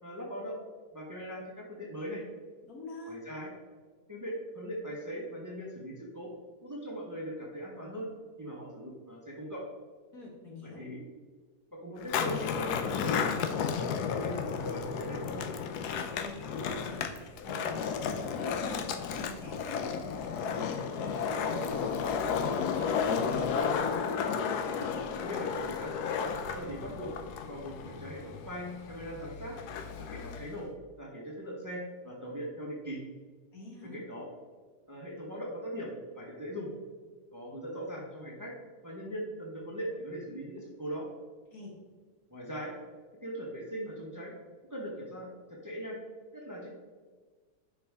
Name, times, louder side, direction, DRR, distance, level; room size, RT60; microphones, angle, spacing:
voice 1, 0.0-0.6 0.9-2.2 3.0-3.5 4.1-6.3 6.6-8.1 8.4-9.6 10.6-11.0 11.7-13.2 13.4-15.4 24.8-24.9 25.2-27.1 27.5-29.6 30.0-30.7 31.0-33.0 33.9-34.3 34.9-35.9 36.1-36.7 37.3-38.5 38.8-41.1 42.3-42.7 43.2-44.3 44.7-46.0 46.3-46.7, equal, 15° right, -2 dB, 1.2 m, -40 dB
voice 2, 2.6-3.2 10.1-10.8 16.2-23.5 33.5-34.0 41.5-41.7, left 2 dB, 65° left, -2 dB, 2.0 m, -45 dB
Skateboard, 12.0-30.6, left 6 dB, 85° left, 1.2 m, -33 dB
10.0 x 4.9 x 3.5 m, 1.4 s
omnidirectional pair, 1.7 m